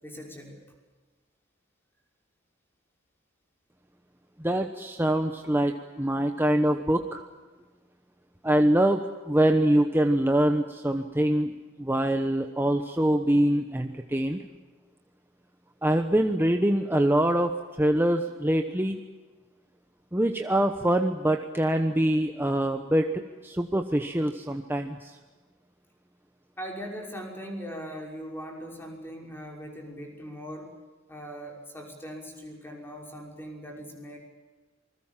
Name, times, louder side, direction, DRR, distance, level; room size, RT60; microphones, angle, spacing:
voice 1, 0.0-0.7 26.6-30.8 31.1-34.2, equal, 10° left, 1 dB, 5.6 m, -40 dB
voice 2, 4.4-7.2 8.4-14.4 15.8-19.0 20.1-25.2, right 1 dB, 10° right, 5 dB, 1.1 m, -24 dB
27.5 x 21.0 x 7.5 m, 1.3 s
head